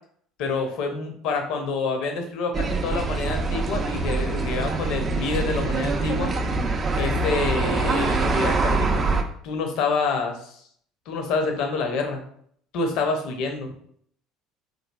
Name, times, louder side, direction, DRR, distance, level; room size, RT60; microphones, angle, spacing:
voice 1, 0.4-6.3 7.0-9.0 9.4-10.6 11.1-12.2 12.7-13.7, left 4 dB, 60° left, 4 dB, 0.5 m, -27 dB
sound 1, 2.5-9.2, right 3 dB, 35° right, 0.3 m, -24 dB
3.0 x 2.4 x 2.2 m, 0.63 s
figure-of-eight pair, 60°, 0 cm